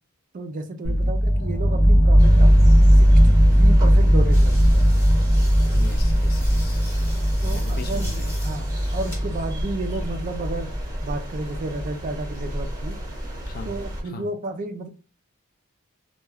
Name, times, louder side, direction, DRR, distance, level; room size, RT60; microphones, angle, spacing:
voice 1, 0.3-2.5 3.0-4.9 7.4-10.7 11.0-13.0 13.7-14.9, right 2 dB, 35° right, 6 dB, 0.3 m, -32 dB
sound 1, 0.8-10.7, equal, 65° left, 0.8 m, -17 dB
voice 2, 0.8-1.2 5.7-6.8 7.5-8.4 13.5-13.8 14.0-14.3, left 3 dB, 40° left, 7 dB, 0.4 m, -39 dB
sound 2, 2.2-14.0, equal, 20° right, 1.0 m, -32 dB
sound 3, 4.3-9.2 9.7-10.4, left 1 dB, 10° left, 0.9 m, -43 dB
2.2 x 2.2 x 3.3 m, 0.35 s
head